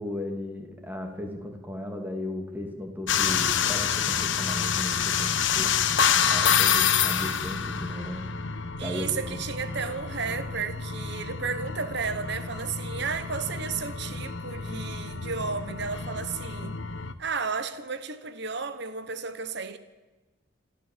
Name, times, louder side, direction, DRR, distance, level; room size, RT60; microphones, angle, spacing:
voice 1, 0.0-8.3 8.8-9.4, left 1 dB, 10° right, 2.7 m, -36 dB
sound 1, 3.1-17.1, left 7 dB, 65° left, 1.1 m, -28 dB
voice 2, 8.8-16.8 17.2-19.8, right 5 dB, 55° right, 1.2 m, -33 dB
27.0 x 13.5 x 7.5 m
head